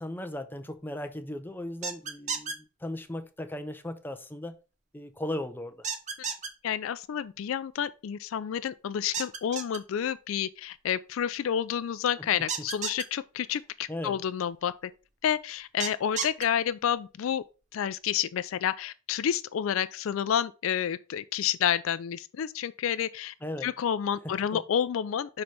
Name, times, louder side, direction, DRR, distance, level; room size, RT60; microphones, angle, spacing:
voice 1, 0.0-4.6 4.9-5.9 12.2-12.3 13.9-14.2 23.4-23.7 24.2-24.3, left 1 dB, 10° left, 0.6 m, -37 dB
sound 1, 1.8-2.5 5.8-6.5 9.1-9.8 12.5-13.0 15.8-16.4, right 6 dB, 35° right, 0.8 m, -32 dB
voice 2, 6.6-14.9 15.2-17.4 17.7-23.3 23.6-25.4, left 9 dB, 75° left, 0.3 m, -29 dB
6.0 x 3.2 x 5.3 m
head